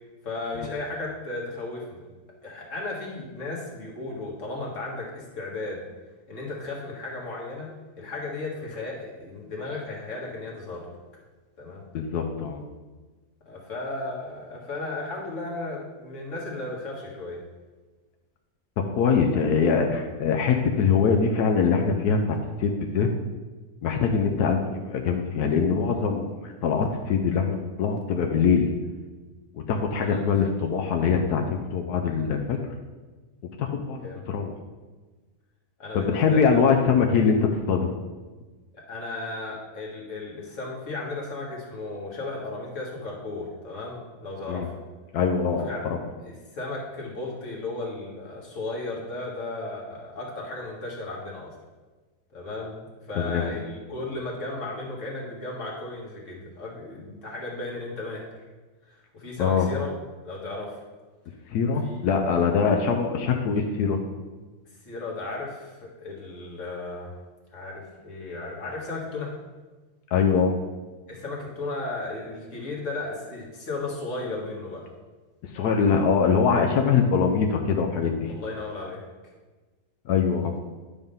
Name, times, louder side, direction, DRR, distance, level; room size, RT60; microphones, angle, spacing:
voice 1, 0.2-2.1 2.4-5.8 6.3-10.9 11.6-11.9 13.5-17.4 30.0-30.3 34.0-34.2 35.8-36.7 38.7-44.8 45.5-45.9 46.2-51.5 52.3-58.4 58.9-59.9 60.2-60.8 61.8-62.0 64.8-67.1 67.5-69.3 71.1-74.9 78.3-79.0, left 2 dB, 50° left, -3 dB, 2.0 m, -35 dB
voice 2, 11.9-12.6 18.9-23.1 23.8-28.7 29.5-32.6 33.6-34.5 35.9-37.9 44.5-44.7 45.1-46.0 53.2-53.6 59.4-59.7 61.5-64.0 70.1-70.5 75.5-78.3 80.1-80.5, left 6 dB, 80° left, 3 dB, 1.2 m, -23 dB
9.8 x 3.6 x 5.5 m, 1.3 s
omnidirectional pair, 1.7 m